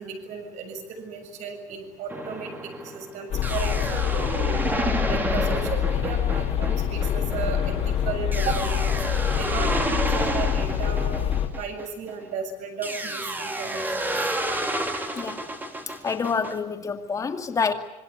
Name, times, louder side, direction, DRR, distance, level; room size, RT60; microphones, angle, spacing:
voice 1, 0.0-4.6 5.0-9.0 9.4-11.2 11.6-14.1, right 5 dB, 55° right, 6 dB, 7.0 m, -34 dB
sound 1, 2.1-12.2 12.8-16.5, right 2 dB, 15° right, 2.8 m, -30 dB
sound 2, 3.3-11.5, left 9 dB, 45° left, 3.2 m, -25 dB
voice 2, 16.0-17.7, left 5 dB, 25° left, 5 dB, 2.4 m, -27 dB
26.0 x 24.5 x 8.5 m, 0.90 s
cardioid pair, 145°, 14 cm